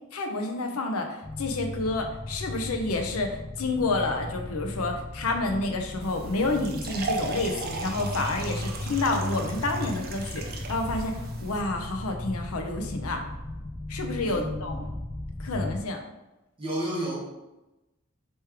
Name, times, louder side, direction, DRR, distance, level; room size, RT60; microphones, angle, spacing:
voice 1, 0.1-11.1 11.4-13.2 13.9-14.8 15.4-16.0, left 2 dB, 85° left, 4 dB, 0.7 m, -29 dB
sound 1, 1.2-15.8, left 1 dB, 20° left, 0.7 m, -36 dB
sound 2, 6.0-11.6, right 3 dB, 45° right, 0.5 m, -37 dB
voice 2, 14.2-14.8 16.6-17.3, right 1 dB, 25° right, -5 dB, 1.5 m, -32 dB
3.4 x 3.1 x 4.6 m, 0.99 s
head